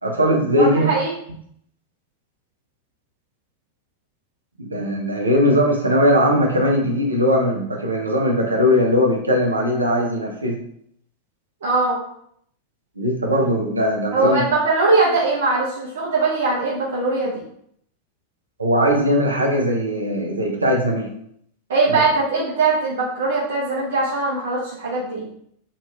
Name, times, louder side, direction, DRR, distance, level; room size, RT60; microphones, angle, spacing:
voice 1, 0.0-0.9 4.6-10.6 13.0-14.4 18.6-21.1 21.9-22.0, equal, 80° right, 0 dB, 0.7 m, -19 dB
voice 2, 0.6-1.1 11.6-12.0 14.1-17.4 21.7-25.2, right 3 dB, 60° right, -6 dB, 0.9 m, -21 dB
2.9 x 2.7 x 3.4 m, 0.68 s
figure-of-eight pair, 90°, 0 cm